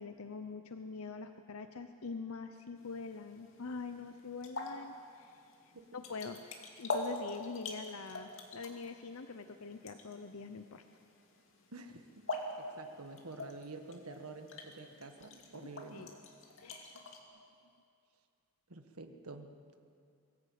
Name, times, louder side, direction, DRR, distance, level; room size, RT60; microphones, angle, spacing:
voice 1, 0.0-5.4 5.9-6.5 6.8-10.8 15.5-16.1 16.6-17.0, left 4 dB, 80° left, 8 dB, 0.8 m, -44 dB
sound 1, 2.8-17.2, left 2 dB, 65° left, 2.4 m, -45 dB
voice 2, 11.7-12.2 12.6-16.1 16.9-17.0 18.7-19.8, right 3 dB, 90° right, 6 dB, 1.6 m, -49 dB
22.5 x 15.0 x 8.5 m, 2.4 s
head